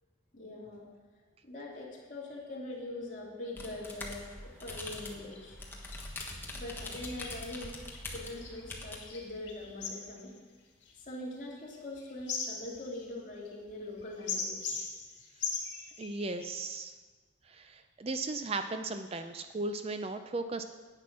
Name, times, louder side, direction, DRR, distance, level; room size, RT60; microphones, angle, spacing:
voice 1, 0.3-0.9 1.4-5.8 6.5-7.7 8.1-10.3 11.0-14.8, left 2 dB, 40° left, -4 dB, 2.8 m, -43 dB
sound 1, 3.6-9.0, left 2 dB, 10° left, 1.2 m, -43 dB
sound 2, 4.7-4.8 5.3-5.4 5.9-16.5, left 5 dB, 65° left, 2.3 m, -41 dB
voice 2, 16.0-16.9 17.5-20.6, right 3 dB, 30° right, 8 dB, 0.4 m, -36 dB
10.5 x 8.8 x 6.0 m, 1.4 s
head